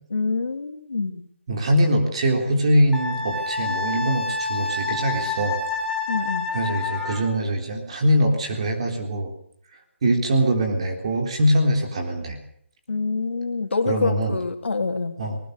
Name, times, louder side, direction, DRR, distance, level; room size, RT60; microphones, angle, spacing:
voice 1, 0.1-1.3 6.1-6.5 12.9-15.2, left 4 dB, 70° left, 7 dB, 3.1 m, -26 dB
voice 2, 1.5-5.6 6.5-9.3 10.0-12.4 13.9-14.4 15.2-15.4, equal, 30° right, 4 dB, 3.7 m, -22 dB
Wind instrument woodwind instrument, 2.9-7.3, left 4 dB, ahead, 1.9 m, -28 dB
20.5 x 20.0 x 6.8 m, 0.64 s
hypercardioid pair, 175°, 7 cm